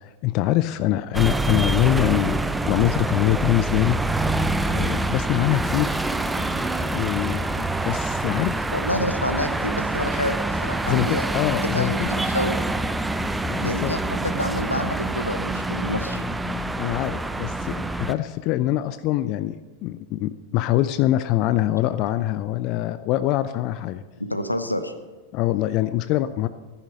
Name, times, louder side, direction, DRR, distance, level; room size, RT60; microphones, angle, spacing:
voice 1, 0.0-4.0 4.6-6.0 6.9-8.6 10.9-12.1 13.5-13.9 16.8-19.6 19.8-24.0 25.3-26.5, left 14 dB, 40° left, 14 dB, 0.5 m, -24 dB
sound 1, 1.1-18.1, right 2 dB, 5° right, 0.6 m, -26 dB
voice 2, 8.7-11.3 11.6-12.6 13.6-16.2 24.2-24.9, left 1 dB, 85° left, 9 dB, 0.9 m, -28 dB
14.5 x 10.0 x 5.3 m, 1.3 s
figure-of-eight pair, 90°, 0 cm